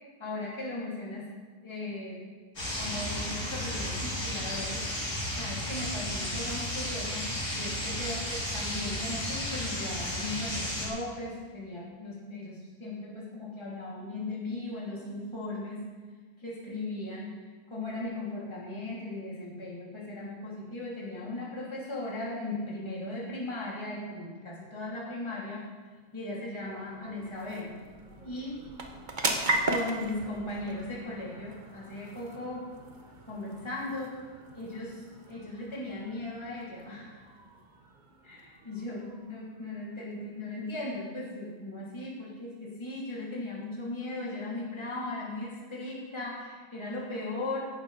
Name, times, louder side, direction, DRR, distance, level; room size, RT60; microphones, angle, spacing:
voice 1, 0.2-1.3 1.6-2.3 2.8-15.9 16.4-17.4 17.7-25.7 26.1-27.7 28.2-28.6 29.6-32.7 33.3-34.1 34.5-37.2 38.2-47.7, left 2 dB, 15° left, -6 dB, 3.0 m, -37 dB
sound 1, 2.6-10.9, left 1 dB, 60° left, 4.5 m, -33 dB
sound 2, 25.8-40.6, right 2 dB, 30° right, 1.3 m, -38 dB
17.0 x 11.0 x 4.2 m, 1.5 s
omnidirectional pair, 1.7 m